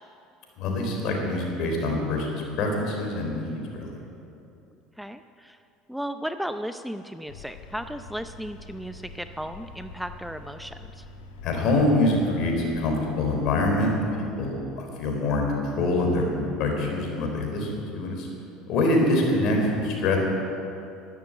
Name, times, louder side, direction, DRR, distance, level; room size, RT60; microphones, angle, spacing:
voice 1, 0.6-3.9 11.4-18.3 18.7-20.2, left 2 dB, 60° left, 1 dB, 4.0 m, -25 dB
voice 2, 5.0-5.6 5.9-11.0, equal, ahead, 9 dB, 0.6 m, -35 dB
sound 1, 7.3-14.1, left 2 dB, 90° left, 1.4 m, -45 dB
12.0 x 12.0 x 7.9 m, 2.7 s
hypercardioid pair, 75°, 0 cm